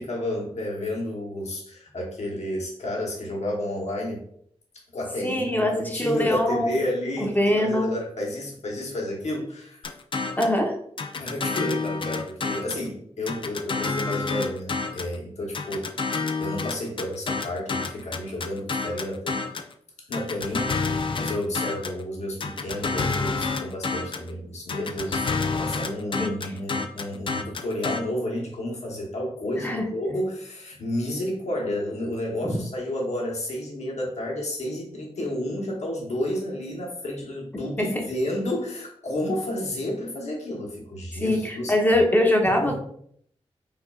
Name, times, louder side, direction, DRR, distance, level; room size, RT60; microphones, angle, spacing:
voice 1, 0.0-4.3 4.9-9.8 11.2-19.4 20.1-42.0 42.6-42.8, left 1 dB, 80° left, -1 dB, 1.0 m, -31 dB
voice 2, 5.2-6.8 7.2-7.9 10.4-10.7 26.2-26.4 29.6-29.8 37.8-38.0 41.2-42.8, left 1 dB, 15° left, 1 dB, 0.8 m, -23 dB
sound 1, 9.8-10.6 11.0-12.9 13.3-15.2 15.5-19.7 20.1-22.0 22.4-24.3 24.7-28.0, left 4 dB, 50° left, 0.4 m, -29 dB
4.5 x 2.5 x 2.3 m, 0.66 s
cardioid pair, 65°, 11 cm